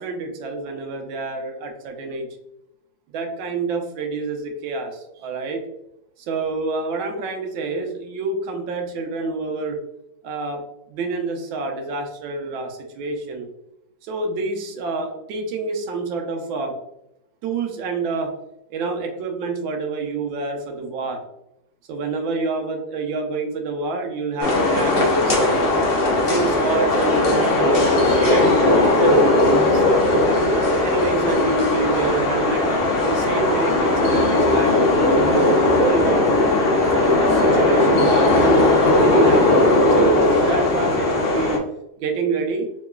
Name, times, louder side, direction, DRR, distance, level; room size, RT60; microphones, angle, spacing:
voice 1, 0.0-2.3 3.1-5.6 6.3-9.8 10.2-10.6 10.9-13.5 14.0-16.7 17.4-18.3 18.7-21.2 21.9-25.5 26.3-30.0 30.8-32.7 33.0-35.4 35.7-36.3 36.8-38.7 39.0-41.6 42.0-42.7, right 3 dB, 85° right, 3 dB, 1.4 m, -27 dB
sound 1, 24.4-41.6, left 2 dB, 90° left, 0.5 m, -18 dB
3.7 x 3.0 x 2.3 m, 0.84 s
omnidirectional pair, 2.1 m